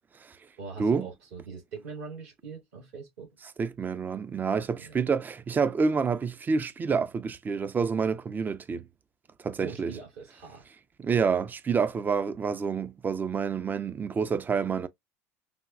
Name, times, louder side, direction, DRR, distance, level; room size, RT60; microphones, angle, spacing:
voice 1, 0.6-3.3 4.8-5.0 9.6-10.7, right 5 dB, 70° right, 2.1 m, -42 dB
voice 2, 3.6-8.8 9.4-9.9 11.0-14.9, right 5 dB, 25° right, 0.4 m, -28 dB
3.4 x 2.2 x 2.3 m
hypercardioid pair, 75°, 8 cm